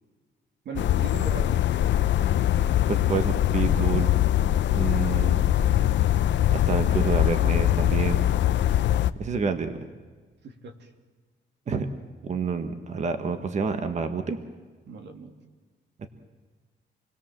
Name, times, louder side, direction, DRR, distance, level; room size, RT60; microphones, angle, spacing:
voice 1, 0.6-1.7 8.7-8.8 10.4-10.9 14.8-15.3, right 5 dB, 65° right, 5 dB, 2.8 m, -39 dB
sound 1, 0.8-9.1, left 12 dB, 70° left, 0.8 m, -22 dB
voice 2, 2.9-4.1 4.7-5.4 6.5-8.2 9.2-9.7 11.7-11.9 12.2-14.4 16.0-16.1, right 5 dB, 35° right, 8 dB, 1.5 m, -28 dB
28.0 x 21.0 x 7.5 m, 1.4 s
wide cardioid pair, 175°, 20 cm